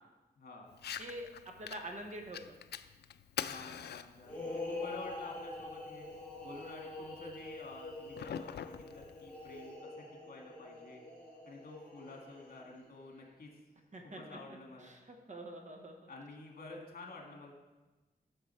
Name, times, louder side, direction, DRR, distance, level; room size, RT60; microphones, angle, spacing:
voice 1, 0.4-0.8 3.5-6.1 6.4-11.0 11.5-13.5 14.0-14.9 16.1-17.5, left 3 dB, 60° left, 0 dB, 2.0 m, -50 dB
Fire, 0.7-9.7, left 9 dB, 85° left, 0.4 m, -47 dB
voice 2, 1.6-2.6 4.5-4.6 13.9-14.4 14.8-15.9, right 1 dB, 45° right, 4 dB, 1.1 m, -45 dB
sound 1, 4.2-12.8, left 2 dB, 10° left, 3.1 m, -45 dB
10.5 x 6.5 x 4.4 m, 1.1 s
wide cardioid pair, 110°, 17 cm